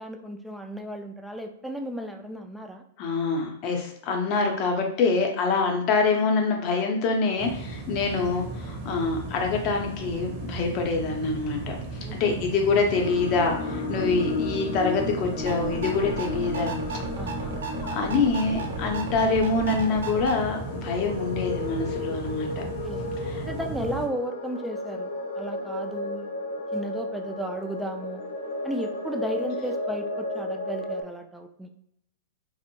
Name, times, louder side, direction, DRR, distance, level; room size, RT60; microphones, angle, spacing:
voice 1, 0.0-2.8 12.0-12.5 17.1-17.6 22.6-23.1 23.4-26.3 26.7-28.2 28.6-31.7, equal, 5° right, 4 dB, 0.3 m, -34 dB
voice 2, 3.0-11.8 12.2-16.7 17.8-22.6 23.2-23.4, left 4 dB, 40° left, 2 dB, 0.6 m, -25 dB
sound 1, 7.4-24.1, right 3 dB, 40° right, 0.7 m, -36 dB
sound 2, 12.9-31.0, left 2 dB, 85° left, 0.6 m, -34 dB
sound 3, 15.4-20.4, right 5 dB, 80° right, 0.5 m, -35 dB
2.6 x 2.0 x 2.9 m, 0.73 s
hypercardioid pair, 120°, 0 cm